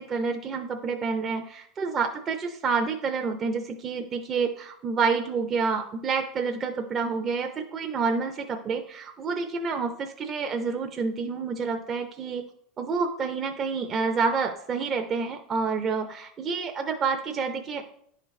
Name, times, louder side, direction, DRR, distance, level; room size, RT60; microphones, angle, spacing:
voice 1, 0.0-12.4 12.8-17.9, right 5 dB, 35° right, 4 dB, 0.6 m, -28 dB
10.5 x 3.9 x 3.1 m, 0.69 s
hypercardioid pair, 95°, 0 cm